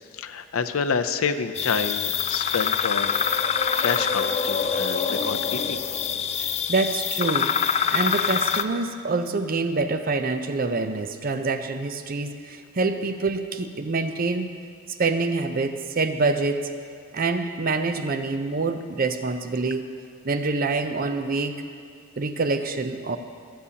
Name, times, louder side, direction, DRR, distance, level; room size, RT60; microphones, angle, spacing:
voice 1, 0.1-3.1 3.8-5.8, left 5 dB, 80° left, 9 dB, 0.6 m, -28 dB
sound 1, 1.6-8.6, left 7 dB, 30° left, 0.3 m, -25 dB
voice 2, 6.4-7.5 7.9-14.5 15.0-16.7 17.1-19.9 20.2-21.6 22.2-23.2, right 3 dB, 45° right, 9 dB, 0.5 m, -26 dB
25.0 x 8.5 x 2.9 m, 2.2 s
head